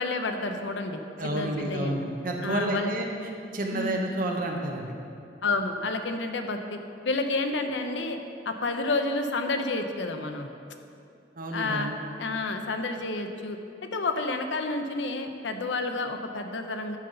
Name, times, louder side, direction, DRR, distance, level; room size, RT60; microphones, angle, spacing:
voice 1, 0.0-2.0 2.4-2.9 3.7-4.0 5.4-6.8 7.0-8.2 8.5-10.5 11.5-11.9 12.2-13.6 13.9-17.0, left 3 dB, 85° left, 6 dB, 0.7 m, -30 dB
voice 2, 1.2-3.1 3.5-4.9 11.4-11.9, right 1 dB, 50° right, 1 dB, 1.0 m, -30 dB
10.5 x 4.0 x 6.7 m, 2.6 s
head